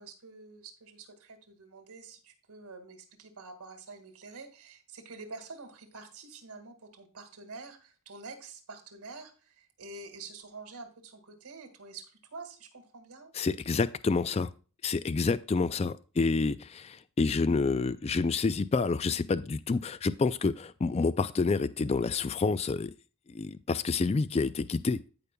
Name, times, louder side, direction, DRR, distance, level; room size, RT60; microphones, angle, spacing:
voice 1, 0.0-13.3, right 3 dB, 90° right, 7 dB, 1.9 m, -47 dB
voice 2, 13.3-14.5 14.8-22.9 23.3-25.0, left 4 dB, 30° left, 15 dB, 0.3 m, -28 dB
15.0 x 5.2 x 2.2 m, 0.36 s
head